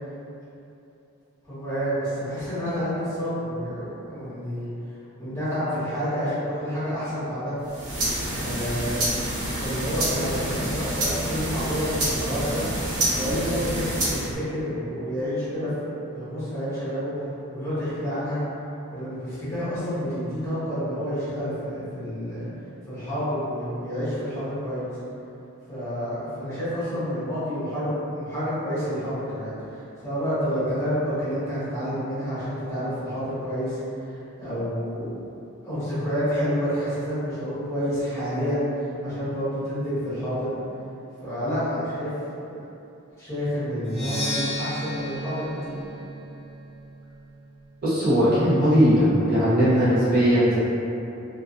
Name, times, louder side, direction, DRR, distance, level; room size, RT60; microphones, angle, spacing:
voice 1, 1.5-4.7 5.2-7.5 8.3-12.6 13.1-18.4 18.9-22.5 22.9-24.9 25.7-33.8 34.0-35.1 35.6-40.6 41.2-42.1 43.2-45.8, equal, 15° left, -14 dB, 1.0 m, -29 dB
sound 1, 7.6-14.4, right 1 dB, 90° right, 0.8 m, -27 dB
Percussion, 43.8-47.6, equal, 5° right, 0.7 m, -33 dB
voice 2, 47.8-50.6, equal, 45° right, -11 dB, 0.7 m, -19 dB
2.4 x 2.3 x 2.4 m, 2.8 s
head